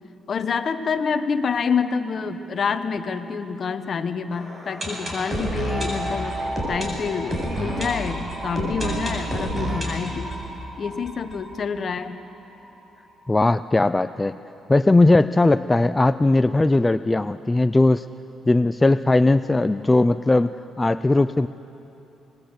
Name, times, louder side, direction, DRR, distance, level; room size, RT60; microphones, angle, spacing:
voice 1, 0.3-10.3 10.8-12.2, left 5 dB, 50° left, 9 dB, 1.3 m, -27 dB
sound 1, 4.3-12.1 12.4-12.5 12.6-12.7 13.3-13.4, right 1 dB, 25° right, 7.4 m, -29 dB
voice 2, 13.3-14.4 14.7-18.1 18.5-20.5 20.8-21.5, left 2 dB, 15° left, 12 dB, 0.4 m, -18 dB
25.0 x 21.5 x 8.2 m, 2.9 s
cardioid pair, 90°, 0 cm